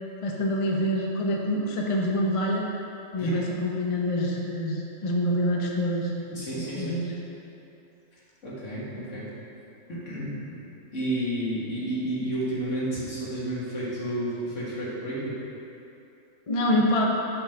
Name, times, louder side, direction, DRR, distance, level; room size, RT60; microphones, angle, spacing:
voice 1, 0.2-2.7 3.1-6.1 6.8-7.1 16.5-17.1, left 1 dB, 40° left, -1 dB, 0.5 m, -26 dB
voice 2, 6.3-7.0 8.4-9.3 9.9-10.6 10.9-15.4, right 1 dB, 65° left, -8 dB, 2.0 m, -31 dB
6.8 x 3.5 x 5.7 m, 2.8 s
omnidirectional pair, 1.4 m